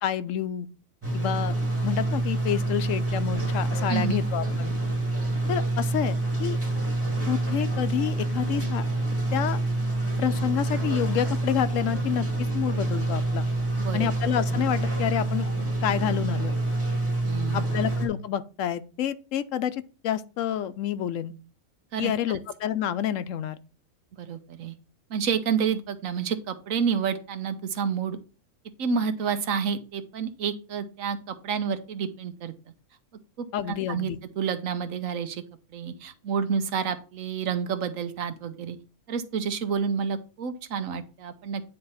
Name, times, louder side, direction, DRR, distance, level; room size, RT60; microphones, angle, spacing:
voice 1, 0.0-0.7 1.1-1.5 1.8-4.7 5.5-6.6 7.3-8.8 9.3-9.6 10.2-12.3 12.5-13.5 13.9-15.5 15.8-16.5 17.5-21.3 22.0-23.6 33.5-34.2, left 10 dB, 80° left, 1.0 m, -28 dB
sound 1, 1.0-18.1, right 2 dB, 10° right, 2.1 m, -27 dB
voice 2, 13.8-14.1 17.2-17.8 21.9-22.1 24.2-24.7 25.1-28.2 28.8-32.5 33.4-35.4 35.7-38.8 39.1-41.6, right 6 dB, 85° right, 1.3 m, -29 dB
9.1 x 3.3 x 5.5 m
omnidirectional pair, 1.3 m